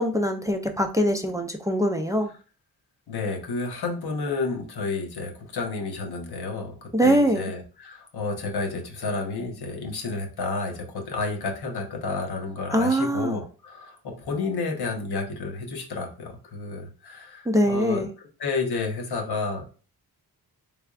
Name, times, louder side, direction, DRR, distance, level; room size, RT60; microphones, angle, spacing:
voice 1, 0.0-2.3 6.9-7.5 12.7-13.4 17.5-18.1, equal, 10° right, 4 dB, 0.4 m, -23 dB
voice 2, 3.1-18.1 18.4-19.7, left 3 dB, 80° left, 2 dB, 0.9 m, -31 dB
3.4 x 3.3 x 2.4 m, 0.36 s
cardioid pair, 90°, 39 cm